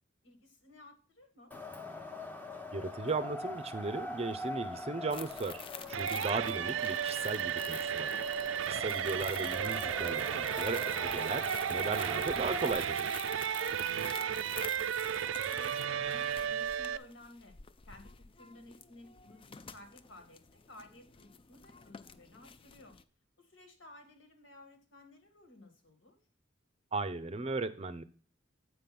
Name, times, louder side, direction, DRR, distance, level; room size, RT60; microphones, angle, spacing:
voice 1, 0.2-1.5 8.7-9.0 14.0-14.4 14.8-17.6 17.9-23.0 23.4-26.2, left 2 dB, 70° left, 5 dB, 2.0 m, -56 dB
Wind, 1.5-12.7, left 2 dB, 10° left, 0.8 m, -44 dB
voice 2, 2.7-13.3 26.9-28.0, right 3 dB, 30° right, 12 dB, 0.6 m, -37 dB
sound 1, 5.1-23.0, left 7 dB, 30° left, 0.4 m, -49 dB
sound 2, 5.9-17.0, right 8 dB, 85° right, 0.4 m, -34 dB
7.9 x 5.3 x 5.9 m, 0.40 s
head